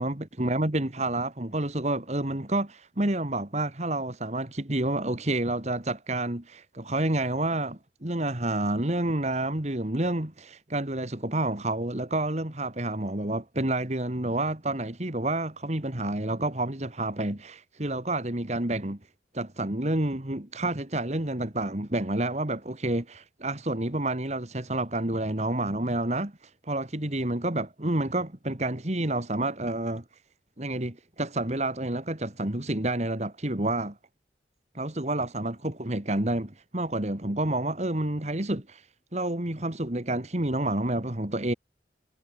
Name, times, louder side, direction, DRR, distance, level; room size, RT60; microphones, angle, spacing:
voice 1, 0.0-19.0 19.3-30.0 30.6-34.0 34.7-38.9 39.1-41.5, right 1 dB, 40° right, 2.2 m, -29 dB
head